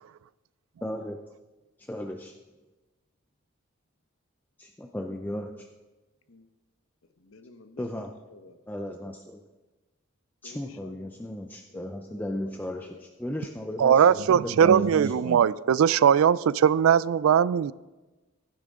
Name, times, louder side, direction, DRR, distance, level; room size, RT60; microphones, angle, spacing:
voice 1, 0.8-1.2 1.8-2.4 4.6-5.7 7.8-8.1 8.7-9.4 10.4-15.4, left 1 dB, 10° left, 0.4 m, -35 dB
voice 2, 7.2-8.6 10.4-11.1 11.7-13.4, left 3 dB, 85° left, 0.9 m, -51 dB
voice 3, 13.8-17.7, right 8 dB, 85° right, 0.3 m, -20 dB
15.0 x 10.0 x 3.7 m
head